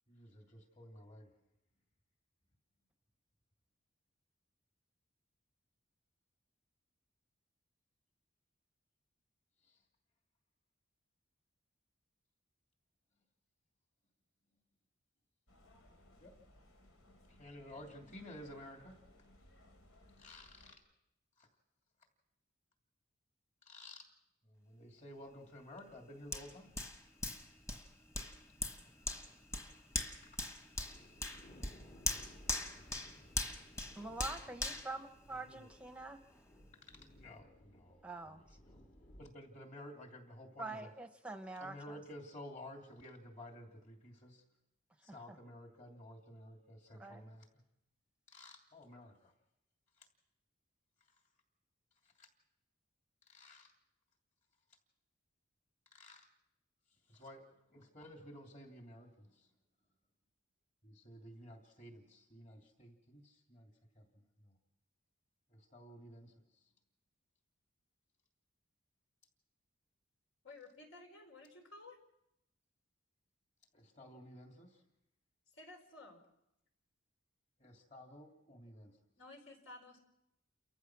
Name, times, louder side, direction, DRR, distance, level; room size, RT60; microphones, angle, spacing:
voice 1, 0.1-1.3 9.6-9.8 16.2-16.3 17.3-19.0 20.2-20.8 21.4-21.5 23.6-24.1 24.4-26.7 30.2-30.4 35.4-35.6 36.8-38.8 39.2-40.9 41.6-44.4 45.0-47.5 48.3-49.3 50.0-50.1 52.0-52.3 53.3-53.7 55.9-56.3 57.1-59.5 60.8-64.5 65.5-66.7 73.7-74.8 77.6-79.0, left 1 dB, 35° left, 2 dB, 2.9 m, -54 dB
sound 1, 15.5-20.7, left 1 dB, 90° left, 3.5 m, -63 dB
Hands, 26.3-35.8 36.3-36.4, left 2 dB, 15° left, 1.4 m, -42 dB
sound 2, 29.1-29.2 30.2-30.3 30.7-39.3, equal, 55° left, 2.9 m, -60 dB
voice 2, 33.9-36.2 38.0-38.4 40.6-42.0 45.1-45.4 47.0-47.2, right 2 dB, 5° right, 6 dB, 0.9 m, -45 dB
voice 3, 70.4-72.0 75.5-76.2 79.2-80.0, left 2 dB, 75° left, 3 dB, 4.4 m, -54 dB
29.5 x 14.5 x 6.2 m, 0.84 s
head